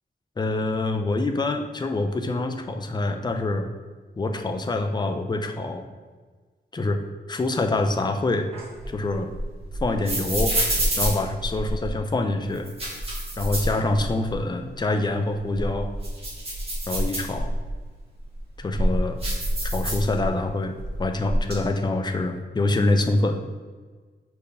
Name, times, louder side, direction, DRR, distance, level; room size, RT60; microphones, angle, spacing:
voice 1, 0.4-3.7 4.2-5.9 6.7-7.0 7.3-8.5 8.9-9.3 9.8-10.6 11.0-12.7 13.4-15.9 16.9-17.5 18.6-19.2 19.7-23.4, left 2 dB, 25° left, 6 dB, 0.5 m, -25 dB
sound 1, 8.5-12.0 12.5-14.4 14.7-14.8 15.3-17.7 18.3-20.5 20.7-21.5, right 1 dB, 35° right, 1.7 m, -27 dB
5.1 x 4.5 x 5.4 m, 1.4 s
wide cardioid pair, 150°, 17 cm